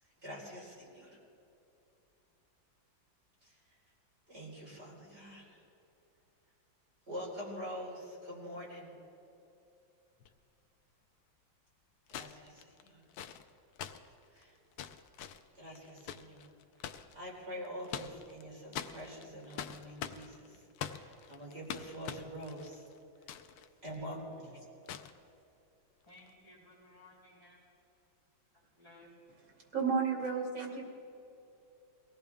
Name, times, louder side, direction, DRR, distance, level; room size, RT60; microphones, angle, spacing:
voice 1, 0.2-1.2 3.4-3.6 4.3-5.6 7.1-8.9 12.1-13.0 14.3-14.6 15.5-16.5 16.8-22.8 23.8-24.5, equal, 35° right, -4 dB, 4.2 m, -45 dB
sound 1, 10.2-10.3 12.1-17.1 17.6-18.4 18.7-23.7 23.9-24.0 24.9-25.2 26.1-26.3, left 9 dB, 75° left, 1.4 m, -44 dB
voice 2, 26.1-27.6 28.5-29.1, left 1 dB, 10° right, -8 dB, 5.1 m, -58 dB
voice 3, 29.7-30.9, right 5 dB, 80° right, -1 dB, 3.3 m, -32 dB
23.0 x 17.0 x 3.5 m, 2.8 s
omnidirectional pair, 2.2 m